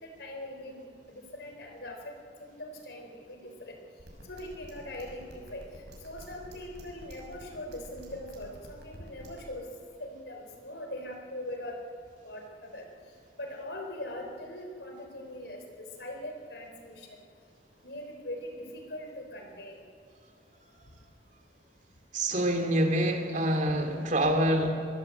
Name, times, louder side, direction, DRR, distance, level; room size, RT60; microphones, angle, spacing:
voice 1, 0.0-3.7 4.3-5.6 6.0-9.7 10.0-11.8 12.2-12.9 13.4-17.2 17.8-19.8, left 1 dB, 70° left, 4.4 m, -41 dB
sound 1, 4.0-9.4, right 1 dB, 70° right, 6.4 m, -48 dB
voice 2, 22.1-24.7, right 1 dB, 45° right, 2.7 m, -26 dB
24.5 x 21.0 x 8.1 m
head